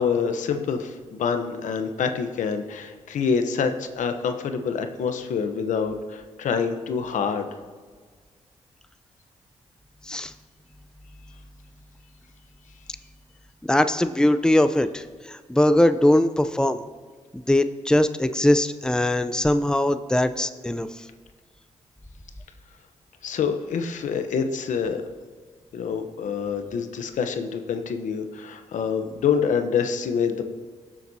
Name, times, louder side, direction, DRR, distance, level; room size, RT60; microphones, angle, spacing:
voice 1, 0.0-7.5 23.2-25.0 25.7-30.4, left 6 dB, 80° left, 7 dB, 0.9 m, -26 dB
voice 2, 13.6-16.8 17.3-20.9, left 1 dB, 5° left, 11 dB, 0.6 m, -21 dB
17.5 x 7.4 x 2.8 m, 1.5 s
cardioid pair, 55°, 13 cm